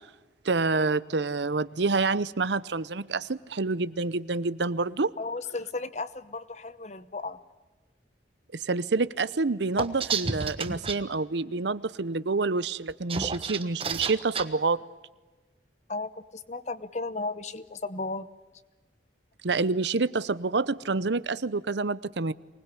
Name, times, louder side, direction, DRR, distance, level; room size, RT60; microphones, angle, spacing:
voice 1, 0.4-5.1 8.5-14.8 19.4-22.3, right 3 dB, 75° right, 18 dB, 0.8 m, -27 dB
voice 2, 5.2-7.4 15.9-18.3, left 3 dB, 40° left, 15 dB, 0.9 m, -35 dB
sound 1, 9.8-11.0 12.9-14.4, right 5 dB, 30° right, 1.3 m, -30 dB
24.5 x 20.0 x 9.9 m, 1.3 s
head